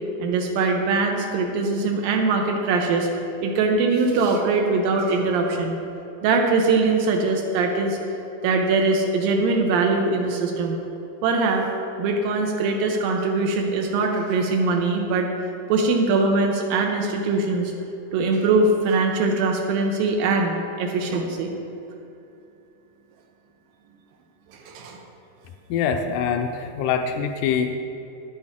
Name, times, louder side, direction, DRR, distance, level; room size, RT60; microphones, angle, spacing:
voice 1, 0.2-3.1 3.4-5.8 6.2-8.0 8.4-10.8 11.2-11.7 12.0-15.3 15.7-17.7 18.1-21.5 24.7-25.0, right 3 dB, 85° right, 2 dB, 2.6 m, -22 dB
voice 2, 25.7-27.8, left 7 dB, 75° left, 6 dB, 1.9 m, -24 dB
12.5 x 9.9 x 3.7 m, 2.8 s
omnidirectional pair, 4.0 m